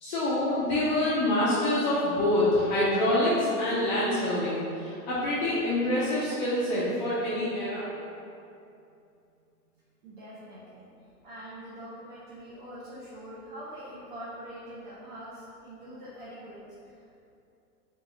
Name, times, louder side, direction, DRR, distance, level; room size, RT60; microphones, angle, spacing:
voice 1, 0.0-7.9, left 1 dB, 30° left, -9 dB, 0.4 m, -26 dB
voice 2, 10.0-10.9 11.2-17.3, equal, 35° right, -10 dB, 0.5 m, -44 dB
2.8 x 2.5 x 2.4 m, 2.6 s
hypercardioid pair, 115°, 46 cm